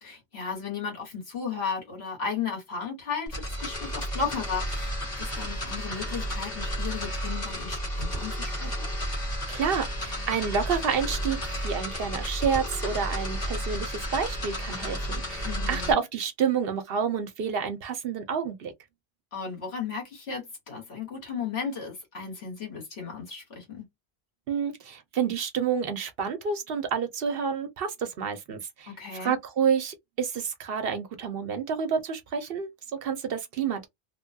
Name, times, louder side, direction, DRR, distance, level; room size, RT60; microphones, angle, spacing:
voice 1, 0.0-4.9 5.2-8.9 15.4-16.0 19.3-23.9 28.9-29.4, left 6 dB, 80° left, 1.6 m, -35 dB
sound 1, 3.3-15.9, equal, 45° left, 1.3 m, -32 dB
voice 2, 9.5-18.7 24.5-28.9 29.2-32.7 33.0-33.9, right 6 dB, 70° right, 0.9 m, -29 dB
2.9 x 2.2 x 2.6 m
omnidirectional pair, 1.1 m